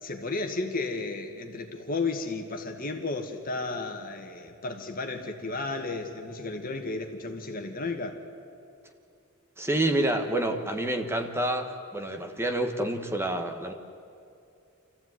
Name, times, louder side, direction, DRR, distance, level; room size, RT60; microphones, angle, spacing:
voice 1, 0.0-8.2, left 3 dB, 40° left, 4 dB, 1.9 m, -33 dB
voice 2, 9.6-13.7, right 1 dB, 10° right, 5 dB, 1.3 m, -28 dB
26.5 x 14.5 x 9.3 m, 2.6 s
head